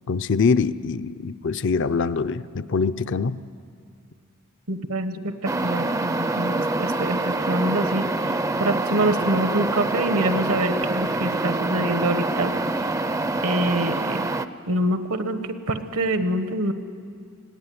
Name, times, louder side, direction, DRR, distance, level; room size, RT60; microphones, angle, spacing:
voice 1, 0.1-3.4, left 5 dB, 55° left, 13 dB, 0.5 m, -24 dB
voice 2, 4.7-12.5 13.4-14.2 14.7-15.4 15.7-16.7, right 1 dB, 75° right, 9 dB, 1.2 m, -25 dB
sound 1, 5.4-14.5, right 2 dB, 15° right, 0.5 m, -25 dB
20.5 x 16.0 x 9.5 m, 2.2 s
head